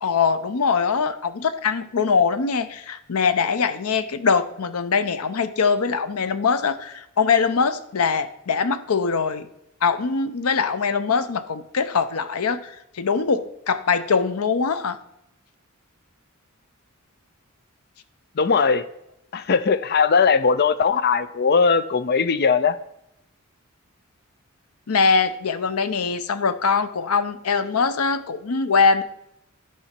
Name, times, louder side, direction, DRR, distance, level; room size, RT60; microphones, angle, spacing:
voice 1, 0.0-9.5 9.8-15.0 24.9-29.0, left 5 dB, 90° left, 12 dB, 0.6 m, -22 dB
voice 2, 18.4-18.8 19.3-22.8, left 5 dB, 50° left, 14 dB, 0.5 m, -19 dB
11.0 x 4.9 x 4.3 m, 0.80 s
head